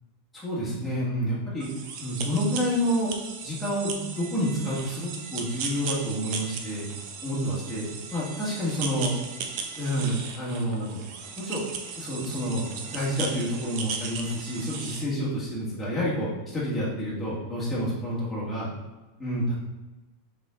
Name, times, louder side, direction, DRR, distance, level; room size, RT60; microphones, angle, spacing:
voice 1, 0.3-1.7 2.0-3.1 3.4-6.9 7.2-9.1 9.8-11.0 11.4-11.6 12.0-18.7 19.2-19.6, equal, 5° left, -9 dB, 1.9 m, -29 dB
sound 1, 1.6-15.0, right 6 dB, 50° right, 0.8 m, -37 dB
6.0 x 4.4 x 3.7 m, 1.1 s
supercardioid pair, 155°, 0 cm